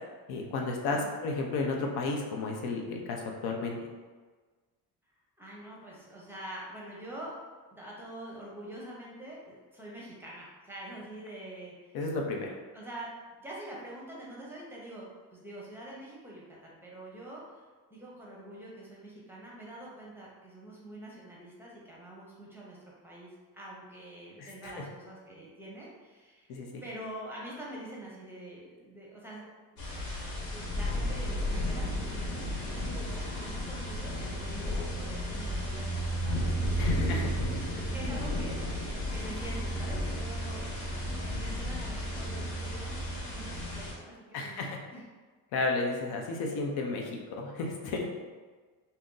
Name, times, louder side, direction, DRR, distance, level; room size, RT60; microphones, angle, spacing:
voice 1, 0.3-3.8 11.9-12.5 24.4-24.7 26.5-26.8 36.8-37.3 44.3-44.8 45.5-47.1 47.4-48.3, left 3 dB, 85° left, 1 dB, 0.7 m, -33 dB
voice 2, 0.9-1.2 5.4-7.3 7.7-12.0 12.4-13.1 13.4-15.0 15.3-17.6 17.9-22.8 23.0-26.5 26.8-29.4 30.5-37.0 37.7-40.9 41.2-44.6 44.9-45.0, right 1 dB, 5° right, -5 dB, 0.6 m, -45 dB
sound 1, 29.8-43.9, equal, 65° left, 1.1 m, -33 dB
2.7 x 2.6 x 3.7 m, 1.4 s
cardioid pair, 155°, 37 cm